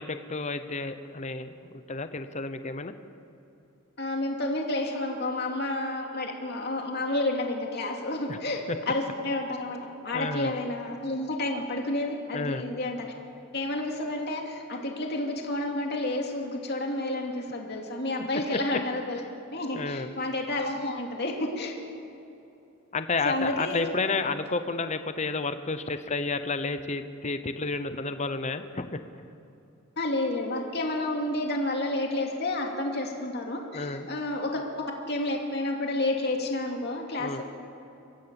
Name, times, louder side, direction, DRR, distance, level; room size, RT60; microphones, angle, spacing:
voice 1, 0.0-2.9 8.3-8.4 10.1-10.5 12.3-12.6 18.5-18.6 19.7-20.1 22.9-29.0 33.7-34.1 37.2-37.4, left 3 dB, 35° left, 10 dB, 0.9 m, -31 dB
voice 2, 4.0-9.8 10.0-13.0 13.5-19.3 19.5-21.7 23.2-23.8 30.0-34.6 35.1-37.4, left 2 dB, 50° left, 1 dB, 2.7 m, -30 dB
24.5 x 15.5 x 7.1 m, 2.8 s
head